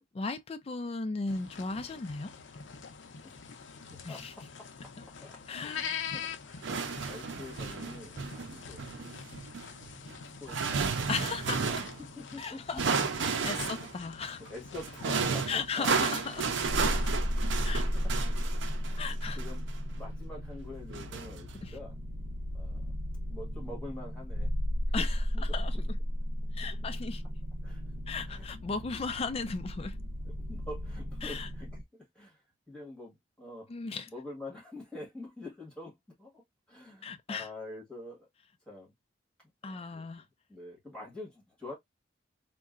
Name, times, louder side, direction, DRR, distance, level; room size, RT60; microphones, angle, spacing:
voice 1, 0.1-2.3 4.0-4.3 5.5-5.8 11.1-11.8 12.4-12.8 13.2-14.4 15.5-16.5 17.6-17.9 19.0-19.4 21.6-21.7 24.9-25.2 25.5-26.0 26.5-27.2 28.1-30.0 31.2-31.5 33.7-34.1 37.0-37.5 39.6-40.2, left 4 dB, 35° left, 0.4 m, -36 dB
sound 1, 1.3-17.2, left 6 dB, 80° left, 0.6 m, -45 dB
voice 2, 3.9-4.9 5.2-6.8 7.1-8.9 10.3-10.9 12.0-12.9 14.2-15.9 17.0-17.3 17.6-18.6 18.8-21.9 22.5-22.8 23.3-24.5 25.0-25.1 25.3-25.5 26.6-26.7 27.6-27.8 28.3-28.5 30.5-32.4 32.7-36.4 36.7-38.3 38.7-38.9 39.6-41.7, left 2 dB, 5° left, 1.5 m, -46 dB
sound 2, 6.6-12.0 12.8-14.0 14.7-20.0 20.9-21.7, right 5 dB, 85° right, 0.5 m, -33 dB
sound 3, 16.6-31.8, equal, 50° right, 0.7 m, -34 dB
3.7 x 2.2 x 2.4 m
head